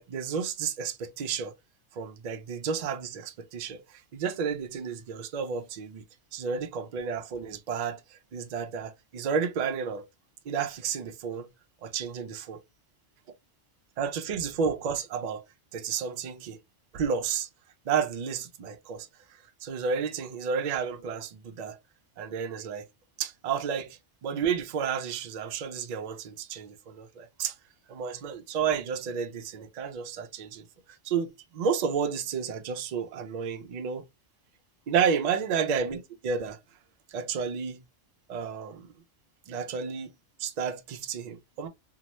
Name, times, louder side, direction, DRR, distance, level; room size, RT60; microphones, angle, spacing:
voice 1, 0.0-1.5 1.9-6.0 6.3-10.0 10.5-11.5 11.8-12.6 14.0-15.4 15.7-16.6 16.9-17.5 17.9-19.1 19.6-21.8 22.2-22.8 23.2-27.5 27.9-30.7 31.0-34.0 34.9-36.6 37.1-37.8 38.3-38.9 39.5-40.1 40.4-41.7, right 6 dB, 75° right, 0.4 m, -31 dB
2.8 x 2.0 x 2.8 m
omnidirectional pair, 1.3 m